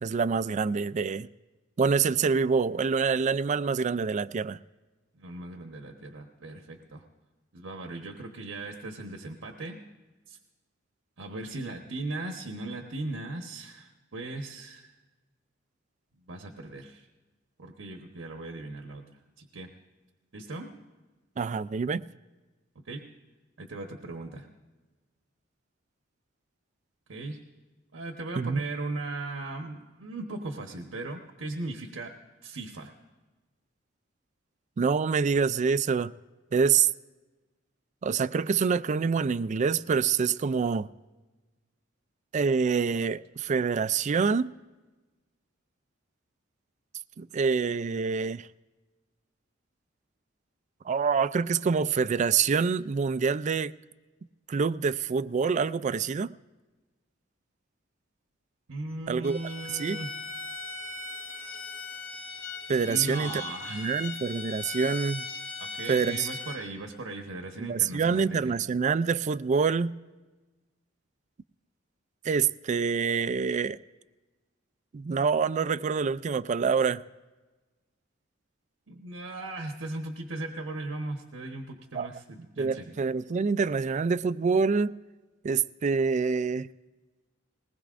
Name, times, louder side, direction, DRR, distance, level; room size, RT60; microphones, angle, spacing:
voice 1, 0.0-1.3 1.8-4.6 21.4-22.1 28.4-28.6 34.8-36.1 36.5-36.9 38.0-40.9 42.3-44.5 47.2-48.5 50.9-53.7 54.5-56.3 59.1-59.4 59.8-60.0 62.7-63.3 63.7-65.3 65.9-66.3 67.6-70.0 72.2-73.8 74.9-77.0 81.9-82.1 82.6-85.0 85.4-86.7, right 5 dB, 40° right, 0.3 m, -26 dB
voice 2, 5.2-7.0 7.5-9.8 10.3-10.4 11.2-14.9 16.3-17.1 17.6-19.0 19.4-19.7 20.3-20.7 22.8-23.0 23.6-24.5 27.1-27.4 27.9-32.1 32.4-32.9 58.7-60.1 62.9-64.0 65.6-68.5 78.9-82.9, right 2 dB, 85° right, 1.1 m, -38 dB
Bowed string instrument, 59.2-66.6, left 3 dB, 75° left, 2.1 m, -39 dB
20.5 x 19.5 x 2.5 m
head